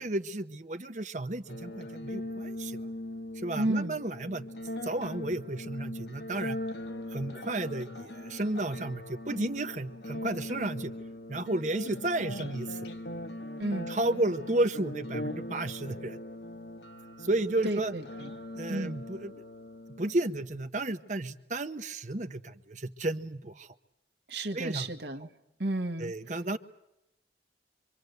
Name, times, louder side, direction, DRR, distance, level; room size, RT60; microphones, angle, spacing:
voice 1, 0.0-2.8 3.4-4.4 4.8-6.6 7.1-10.9 11.3-12.8 13.9-16.2 17.2-17.9 18.5-19.3 20.0-23.7 24.5-24.9 26.0-26.6, right 2 dB, 40° right, 9 dB, 0.9 m, -32 dB
sound 1, 1.5-20.4, left 1 dB, 70° left, 1.3 m, -40 dB
voice 2, 3.6-4.0 13.6-13.9 17.6-18.3 18.7-19.0 24.3-25.3 25.6-26.1, right 1 dB, 70° right, 4 dB, 1.6 m, -32 dB
25.0 x 24.5 x 8.1 m, 0.88 s
head